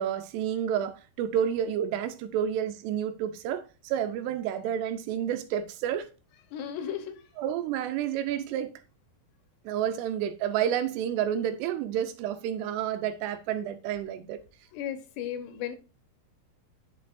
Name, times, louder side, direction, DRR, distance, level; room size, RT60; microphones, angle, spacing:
voice 1, 0.0-6.1 7.4-8.7 9.7-14.4, right 9 dB, 80° right, 2.8 m, -30 dB
voice 2, 6.3-7.2 14.7-15.7, left 9 dB, 80° left, 3.2 m, -35 dB
9.0 x 6.5 x 2.6 m
omnidirectional pair, 4.9 m